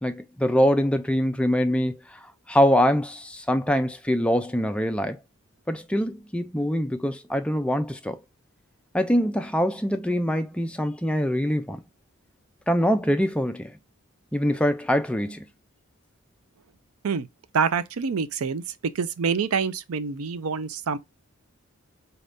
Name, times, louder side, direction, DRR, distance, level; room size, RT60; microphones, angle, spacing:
voice 1, 0.0-5.2 5.7-8.2 8.9-11.8 12.7-13.7 14.3-15.5, equal, 5° left, 0.4 m, -24 dB
voice 2, 17.5-18.6 18.9-21.0, right 6 dB, 85° right, 0.5 m, -26 dB
4.1 x 2.7 x 3.4 m
head